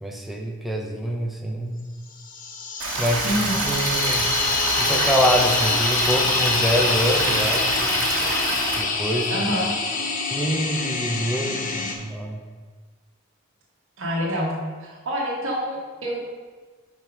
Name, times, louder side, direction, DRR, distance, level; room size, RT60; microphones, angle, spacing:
voice 1, 0.0-1.8 3.0-4.3 4.8-8.0 8.8-9.3 10.3-12.4, equal, ahead, 1 dB, 0.6 m, -26 dB
sound 1, 2.2-11.9, left 4 dB, 40° left, 0.6 m, -25 dB
Stream, 2.8-8.8, right 3 dB, 90° right, 1.3 m, -26 dB
voice 2, 3.2-3.7 9.3-9.7 14.0-14.5 14.8-16.2, equal, 65° right, -4 dB, 1.2 m, -26 dB
5.1 x 4.7 x 5.9 m, 1.5 s
head